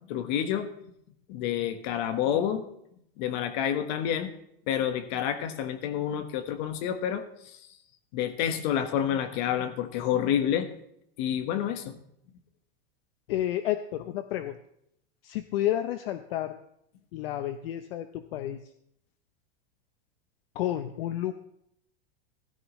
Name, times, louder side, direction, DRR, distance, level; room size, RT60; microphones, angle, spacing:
voice 1, 0.1-0.9 1.3-2.6 3.2-4.3 4.7-7.6 8.1-10.7 11.2-12.0, left 9 dB, 50° left, 9 dB, 1.4 m, -29 dB
voice 2, 13.3-14.6 15.2-16.6 17.1-18.7 20.5-21.3, left 12 dB, 65° left, 10 dB, 0.8 m, -31 dB
16.5 x 13.5 x 3.2 m, 0.76 s
supercardioid pair, 155°, 31 cm